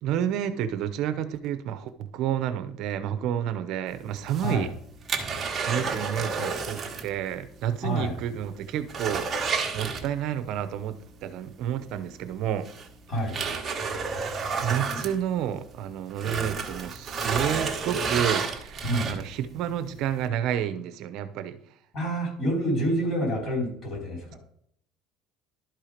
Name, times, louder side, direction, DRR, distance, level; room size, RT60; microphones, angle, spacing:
voice 1, 0.0-4.7 5.6-12.7 14.6-21.6, right 10 dB, 55° right, 11 dB, 0.7 m, -30 dB
sound 1, 4.2-7.2 7.4-7.5 8.0-8.1 8.5-10.5 11.9-12.0 12.7-15.8 16.1-19.4 20.0-20.1, right 5 dB, 25° right, 1.2 m, -30 dB
voice 2, 7.8-8.1 13.1-13.4 18.8-19.1 21.9-24.4, right 1 dB, 35° left, -1 dB, 4.3 m, -27 dB
12.0 x 4.5 x 5.0 m, 0.68 s
cardioid pair, 150°, 0 cm